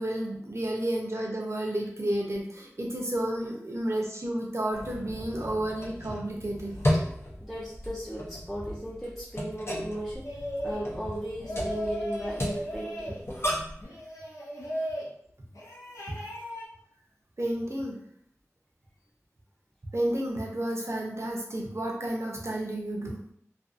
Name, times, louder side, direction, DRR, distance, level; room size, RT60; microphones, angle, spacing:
voice 1, 0.0-6.8 16.1-16.3 17.4-18.0 19.9-23.2, right 1 dB, 55° right, -1 dB, 0.6 m, -31 dB
sound 1, 4.7-13.8, equal, 55° left, 0.6 m, -34 dB
voice 2, 7.4-10.2 10.6-13.2, equal, 5° left, -5 dB, 0.5 m, -36 dB
sound 2, 10.2-10.9 11.4-13.2 13.8-15.1 15.5-16.7, equal, 90° left, 0.7 m, -36 dB
2.5 x 2.4 x 2.4 m, 0.67 s
wide cardioid pair, 50°, 5 cm